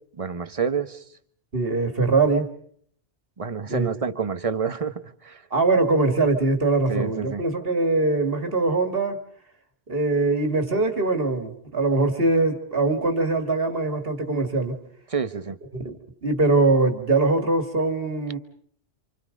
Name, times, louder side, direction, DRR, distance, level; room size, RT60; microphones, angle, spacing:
voice 1, 0.2-1.0 3.4-5.4 6.9-7.4 15.1-15.6, right 6 dB, 30° right, 11 dB, 1.1 m, -28 dB
voice 2, 1.5-2.5 3.7-3.9 5.5-9.2 9.9-14.8 15.7-18.4, right 3 dB, 50° right, 7 dB, 2.4 m, -22 dB
29.0 x 27.0 x 5.2 m, 0.62 s
omnidirectional pair, 1.2 m